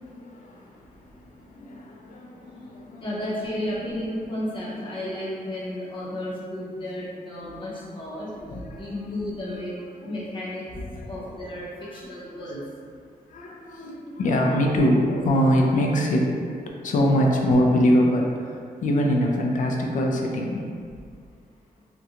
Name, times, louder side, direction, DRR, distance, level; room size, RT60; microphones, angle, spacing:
voice 1, 0.0-3.0 8.3-9.2 10.8-11.3 11.8-12.1 13.3-16.4 16.7-20.7, equal, 60° left, 0 dB, 0.4 m, -24 dB
voice 2, 3.0-8.3 8.8-9.8 10.0-10.7 11.1-12.6, left 1 dB, 35° left, -7 dB, 0.7 m, -32 dB
2.4 x 2.2 x 2.8 m, 2.1 s
wide cardioid pair, 130°, 15 cm